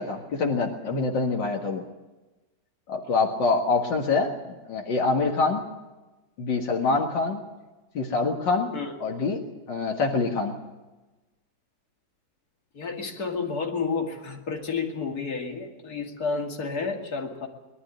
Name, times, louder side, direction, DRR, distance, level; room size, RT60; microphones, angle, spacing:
voice 1, 0.0-1.8 2.9-5.7 6.4-7.4 7.9-8.7 9.0-9.4 9.7-10.6, left 3 dB, 85° left, 0 dB, 2.4 m, -25 dB
voice 2, 12.7-17.5, left 4 dB, 55° left, 1 dB, 3.0 m, -30 dB
22.0 x 12.5 x 9.4 m, 1.1 s
omnidirectional pair, 1.9 m